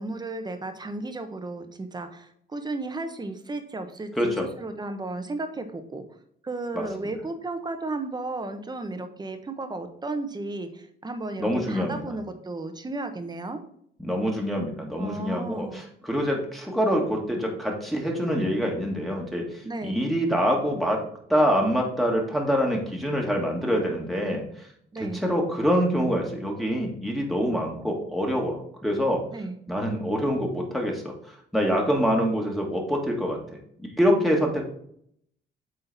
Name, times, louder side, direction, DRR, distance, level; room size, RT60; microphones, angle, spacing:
voice 1, 0.0-6.0 6.4-13.6 15.0-15.9 19.6-20.0 24.9-25.2 29.3-29.6, right 2 dB, 20° right, 7 dB, 1.0 m, -34 dB
voice 2, 11.4-12.2 14.0-19.5 19.8-21.0 21.3-24.4 25.0-29.3 29.7-33.4 34.0-34.6, equal, ahead, -1 dB, 1.8 m, -25 dB
8.1 x 3.8 x 4.1 m, 0.66 s
cardioid pair, 90°, 20 cm